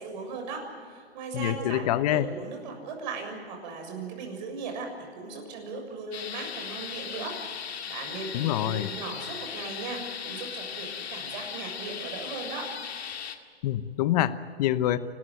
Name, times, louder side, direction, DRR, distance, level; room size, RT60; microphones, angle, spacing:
voice 1, 0.0-7.4 7.9-12.7, right 4 dB, 45° right, 3 dB, 7.0 m, -38 dB
voice 2, 1.3-2.3 8.3-8.9 13.6-15.0, left 13 dB, 35° left, 14 dB, 1.0 m, -26 dB
sound 1, 6.1-13.4, left 7 dB, 75° left, 2.2 m, -37 dB
29.0 x 14.0 x 9.2 m, 2.1 s
hypercardioid pair, 140°, 33 cm